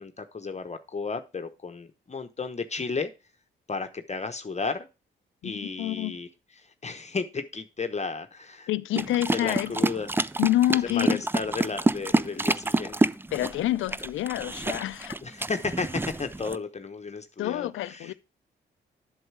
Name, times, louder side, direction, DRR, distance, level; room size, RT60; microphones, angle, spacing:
voice 1, 0.0-3.1 3.7-4.9 5.4-6.3 6.8-8.7 9.3-10.1 10.9-13.1 15.2-18.1, left 4 dB, 35° left, 0.9 m, -33 dB
voice 2, 5.8-6.2 8.7-9.7 10.4-11.2 13.3-15.2 17.4-18.1, left 15 dB, 75° left, 0.5 m, -27 dB
sound 1, 9.0-16.6, right 2 dB, 10° right, 0.4 m, -28 dB
7.9 x 6.4 x 4.6 m
supercardioid pair, 55°, 20 cm